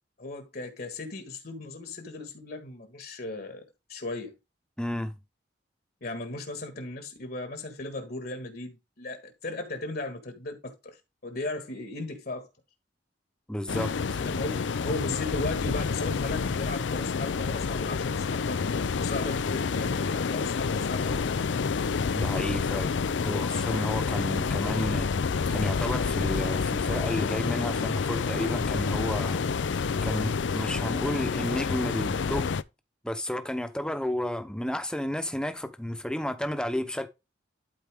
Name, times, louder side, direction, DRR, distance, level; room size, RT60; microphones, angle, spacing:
voice 1, 0.2-3.6 3.9-4.3 6.0-12.5 14.2-14.5 14.8-21.3, left 2 dB, 55° left, 1.7 m, -37 dB
voice 2, 4.8-5.1 13.5-14.4 22.1-22.9 23.2-25.1 25.5-29.4 30.0-32.6 33.0-37.1, left 1 dB, 5° left, 0.9 m, -32 dB
sound 1, 13.7-32.6, left 5 dB, 85° left, 0.5 m, -28 dB
12.0 x 4.5 x 3.6 m
head